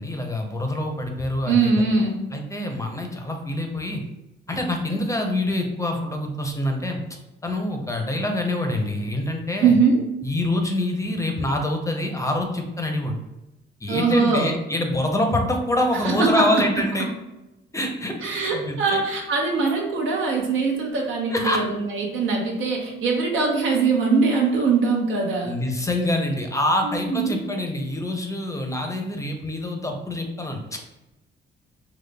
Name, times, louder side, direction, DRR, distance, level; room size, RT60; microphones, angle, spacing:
voice 1, 0.0-2.1 2.3-4.0 4.5-7.0 7.4-9.7 10.2-13.2 13.8-17.1 17.7-19.0 21.3-21.7 25.4-30.9, left 1 dB, 15° left, 3 dB, 0.6 m, -26 dB
voice 2, 1.5-2.2 9.6-10.0 13.9-14.6 16.0-16.7 18.2-25.6 26.8-27.4, right 4 dB, 80° right, 0 dB, 0.9 m, -22 dB
3.9 x 3.0 x 2.2 m, 1.0 s
cardioid pair, 90°, 20 cm